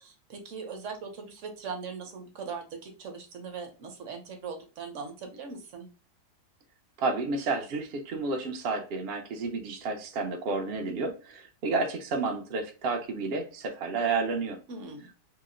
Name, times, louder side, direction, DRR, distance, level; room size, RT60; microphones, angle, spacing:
voice 1, 0.0-5.9 14.7-15.1, right 5 dB, 60° right, 0.9 m, -40 dB
voice 2, 7.0-14.6, right 3 dB, 80° right, 0.5 m, -31 dB
2.9 x 2.0 x 3.6 m
omnidirectional pair, 1.7 m